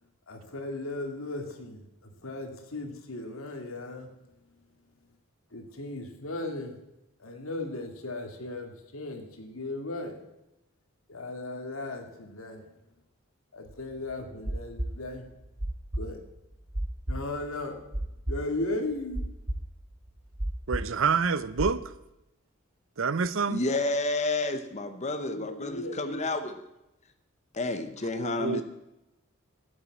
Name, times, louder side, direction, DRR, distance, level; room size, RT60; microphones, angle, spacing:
voice 1, 0.3-4.1 5.5-6.8 7.2-10.2 11.1-12.7 13.5-15.3 15.9-16.2 17.1-17.9 18.3-19.2 25.2-26.4, left 2 dB, 75° left, 2.1 m, -36 dB
sound 1, 13.7-21.8, right 1 dB, 35° right, 1.4 m, -33 dB
voice 2, 20.7-21.8 23.0-23.6 28.2-28.6, right 5 dB, 65° right, 0.6 m, -27 dB
voice 3, 23.5-26.5 27.5-28.6, left 2 dB, 35° left, 0.9 m, -30 dB
12.0 x 8.9 x 7.3 m
head